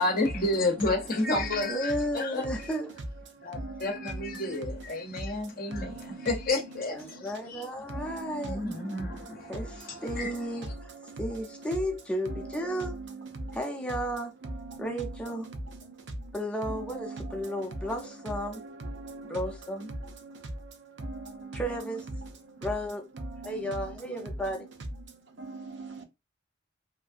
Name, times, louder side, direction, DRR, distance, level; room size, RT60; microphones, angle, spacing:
voice 1, 0.0-2.6 3.4-6.0 6.3-7.6 8.4-10.3 10.6-10.7, left 2 dB, 50° left, 0.7 m, -31 dB
voice 2, 1.7-2.9 6.9-8.6 9.5-10.9 11.2-13.0 13.5-14.3 14.8-15.5 16.3-18.6 19.2-19.9 21.5-22.1 22.6-23.1 23.4-24.7, equal, 5° left, 0.6 m, -33 dB
voice 3, 3.5-3.9 5.7-5.9 7.9-8.5 9.7-9.8 11.1-11.2 13.4-13.6 14.7-14.8 17.1-17.2 18.8-19.4 20.2-20.4 21.0-21.6 23.4-23.5 25.4-26.0, right 2 dB, 65° right, 0.6 m, -39 dB
2.8 x 2.6 x 2.4 m
head